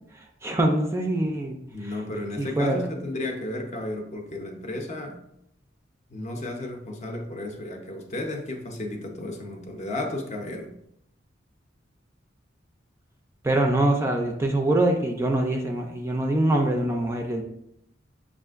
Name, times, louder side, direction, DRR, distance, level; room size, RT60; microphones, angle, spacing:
voice 1, 0.4-1.9 2.4-2.9 13.4-17.4, right 1 dB, 15° right, 0.3 m, -24 dB
voice 2, 1.7-5.2 6.1-10.7, left 1 dB, 40° left, 0.6 m, -33 dB
6.5 x 2.5 x 2.4 m
head